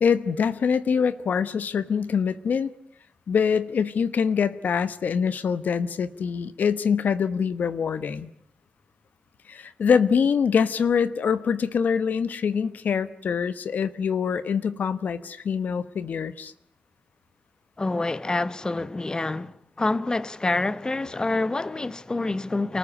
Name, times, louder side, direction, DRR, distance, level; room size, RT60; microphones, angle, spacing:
voice 1, 0.0-2.7 3.3-8.3 9.5-16.5, left 6 dB, 80° left, 1.0 m, -24 dB
voice 2, 17.8-22.8, left 2 dB, 25° left, 1.1 m, -27 dB
29.0 x 14.5 x 9.8 m
cardioid pair, 75°, 3 cm